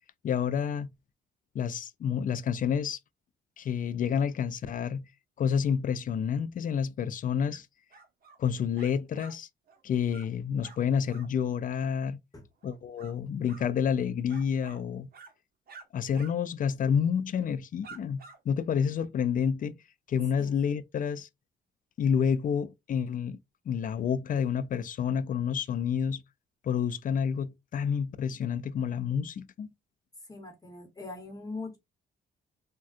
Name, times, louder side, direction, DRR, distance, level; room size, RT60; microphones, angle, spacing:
voice 1, 0.2-0.9 1.5-3.0 3.6-5.0 5.4-7.7 8.4-9.5 9.8-12.2 12.6-15.1 15.9-18.2 18.5-19.7 20.1-21.3 22.0-23.4 23.7-26.2 26.6-29.7, left 7 dB, 45° left, 0.4 m, -29 dB
sound 1, 7.5-7.6 7.9-8.4 8.7-9.3 9.7-9.8 10.1-10.3 10.6-10.8 11.1-11.3 12.6-13.1 13.5-13.7 14.3-14.8 15.1-15.3 15.7-15.8 16.1-16.3 16.6-16.8 17.4-17.5 17.8-18.4, right 4 dB, 50° right, 0.8 m, -50 dB
voice 2, 30.3-31.8, left 3 dB, 15° left, 1.1 m, -41 dB
3.6 x 2.2 x 2.4 m
cardioid pair, 90°, 20 cm